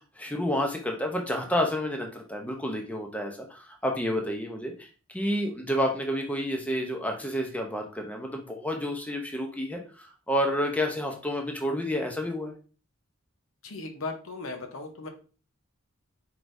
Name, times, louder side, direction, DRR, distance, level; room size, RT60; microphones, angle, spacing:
voice 1, 0.0-12.5, equal, 5° left, 2 dB, 0.7 m, -30 dB
voice 2, 13.6-15.1, left 3 dB, 75° left, 5 dB, 0.8 m, -37 dB
4.6 x 3.8 x 2.6 m, 0.36 s
head